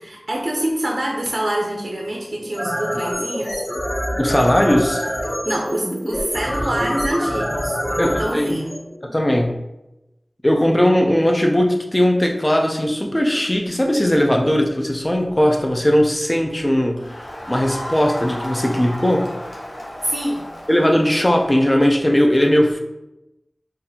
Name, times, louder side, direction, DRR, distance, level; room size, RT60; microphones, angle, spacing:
voice 1, 0.0-3.6 5.5-8.7 20.0-20.5, right 1 dB, 60° right, -1 dB, 0.5 m, -25 dB
sound 1, 2.4-9.5, equal, 50° left, 1.4 m, -26 dB
voice 2, 4.2-5.0 8.0-8.6 9.1-9.6 10.4-19.3 20.7-22.8, equal, 25° left, 3 dB, 0.5 m, -18 dB
Crowd, 17.0-21.8, left 1 dB, 90° left, 0.6 m, -34 dB
3.9 x 2.5 x 2.8 m, 0.95 s
wide cardioid pair, 45°, 0 cm